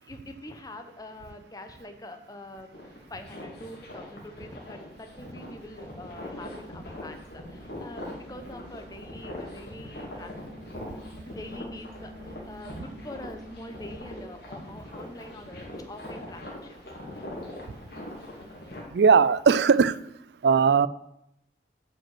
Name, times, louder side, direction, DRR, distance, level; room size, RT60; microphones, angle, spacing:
voice 1, 0.0-2.7 3.1-10.3 11.3-16.8 17.1-17.3, left 1 dB, 20° left, 6 dB, 0.8 m, -44 dB
sound 1, 2.7-18.8, left 1 dB, 60° left, 2.6 m, -42 dB
sound 2, 5.0-14.3, right 1 dB, 50° right, 1.4 m, -49 dB
voice 2, 18.9-20.0 20.4-20.9, right 6 dB, 70° right, 19 dB, 0.4 m, -19 dB
8.5 x 5.4 x 7.7 m, 0.80 s
head